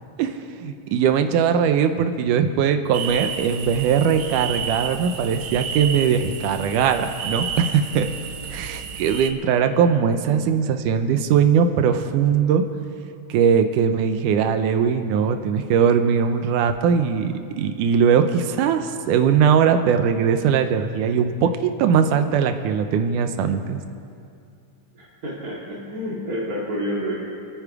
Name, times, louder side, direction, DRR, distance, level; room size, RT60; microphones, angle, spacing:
voice 1, 0.2-8.1 8.5-12.6 13.3-23.8, right 7 dB, 90° right, 8 dB, 2.3 m, -20 dB
sound 1, 2.9-9.3, right 6 dB, 70° right, 1.3 m, -31 dB
voice 2, 24.9-27.2, equal, 30° right, -7 dB, 2.2 m, -29 dB
29.0 x 9.7 x 4.9 m, 2.5 s
omnidirectional pair, 3.6 m